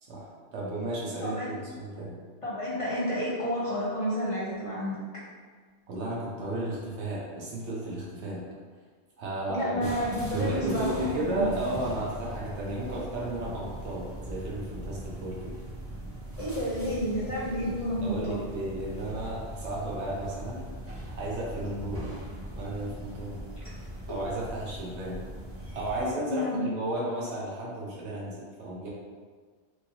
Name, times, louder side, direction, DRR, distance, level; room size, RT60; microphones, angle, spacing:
voice 1, 0.1-2.2 5.9-8.4 9.2-9.9 10.3-15.5 18.0-20.7 21.1-22.1 22.5-23.4 24.1-25.2 25.7-28.9, right 1 dB, 80° right, -4 dB, 1.1 m, -34 dB
voice 2, 1.2-1.5 2.4-5.0 9.5-11.5 16.4-18.4 26.3-26.7, equal, 35° left, -8 dB, 0.7 m, -30 dB
sound 1, 9.8-26.1, equal, 20° right, 0.4 m, -40 dB
3.0 x 2.7 x 2.8 m, 1.5 s
omnidirectional pair, 1.1 m